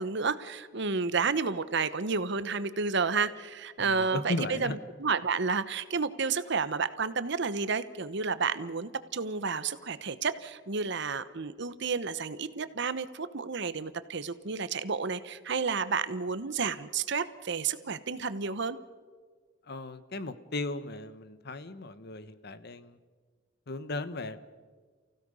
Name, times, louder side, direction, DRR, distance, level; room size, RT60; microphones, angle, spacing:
voice 1, 0.0-18.8, right 5 dB, 65° right, 13 dB, 1.0 m, -31 dB
voice 2, 3.8-4.8 19.7-23.0 23.7-24.4, left 2 dB, 55° left, 13 dB, 1.1 m, -36 dB
29.5 x 16.0 x 5.5 m, 1.5 s
head